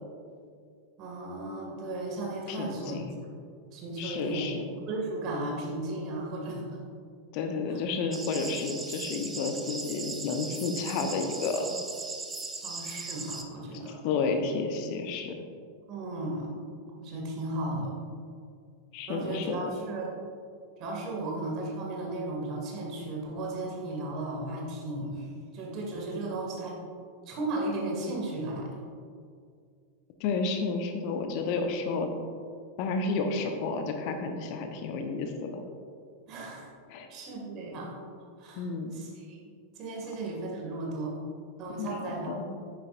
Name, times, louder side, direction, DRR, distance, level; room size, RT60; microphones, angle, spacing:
voice 1, 1.0-3.1 3.7-4.6 4.9-6.8 7.7-7.8 12.6-14.0 15.9-16.5 17.0-18.0 19.1-20.1 20.8-26.8 27.3-28.8 36.3-36.7 37.1-38.0 38.4-38.7 38.9-39.4 39.8-41.2 41.6-42.4, right 2 dB, 40° right, -2 dB, 2.3 m, -35 dB
voice 2, 2.5-3.0 4.0-4.6 7.3-11.7 13.7-15.3 18.9-19.8 30.2-32.1 32.8-35.6 36.9-37.1 38.5-38.9 41.8-42.4, left 4 dB, 45° left, 5 dB, 1.0 m, -31 dB
sound 1, 8.1-13.4, right 3 dB, 15° right, 0.9 m, -38 dB
10.5 x 9.3 x 2.6 m, 2.2 s
figure-of-eight pair, 90°, 0 cm